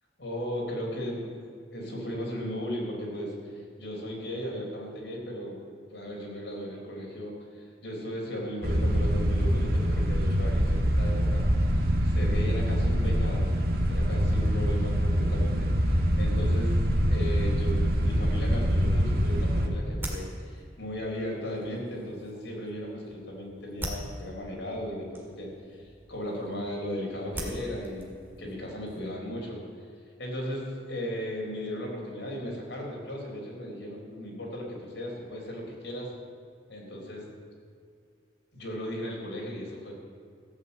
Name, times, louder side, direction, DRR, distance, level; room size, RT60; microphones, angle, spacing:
voice 1, 0.2-1.2 1.7-5.6 5.9-11.8 12.0-13.5 13.8-25.5 25.8-29.6 30.2-36.1 36.7-37.3 38.5-40.0, equal, 75° left, -2 dB, 3.9 m, -36 dB
sound 1, 8.6-19.7, equal, 55° right, 1.6 m, -25 dB
sound 2, 18.9-29.2, right 1 dB, 10° right, 2.0 m, -44 dB
14.5 x 7.3 x 8.3 m, 2.3 s
head